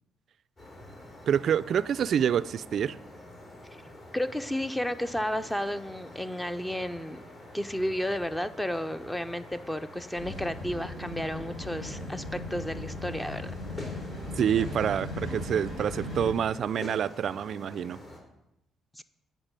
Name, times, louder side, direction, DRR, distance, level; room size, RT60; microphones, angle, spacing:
sound 1, 0.6-18.2, left 1 dB, 45° left, 2.9 m, -47 dB
voice 1, 1.3-3.0 14.4-18.0, right 8 dB, 60° right, 0.3 m, -27 dB
voice 2, 4.1-7.2 7.5-13.5 18.9-19.0, left 1 dB, 10° left, 0.5 m, -32 dB
sound 2, 10.1-16.3, left 1 dB, 80° left, 4.2 m, -37 dB
8.8 x 5.4 x 6.7 m
cardioid pair, 90°, 0 cm